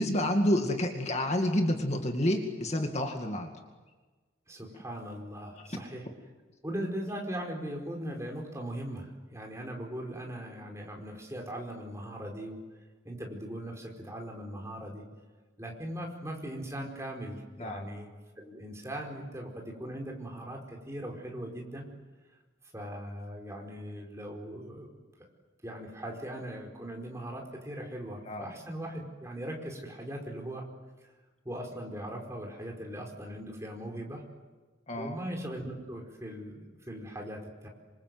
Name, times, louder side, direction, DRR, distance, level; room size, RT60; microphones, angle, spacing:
voice 1, 0.0-3.5 5.5-5.6 17.6-17.9 28.2-28.5 34.9-35.2, left 1 dB, 35° left, 3 dB, 2.3 m, -29 dB
voice 2, 4.5-6.1 6.6-12.6 13.0-15.0 15.6-18.1 18.4-21.8 22.7-24.9 25.2-25.3 25.6-30.6 31.4-34.2 34.9-37.7, right 1 dB, 15° right, 1 dB, 4.9 m, -39 dB
27.5 x 26.0 x 8.0 m, 1.3 s
head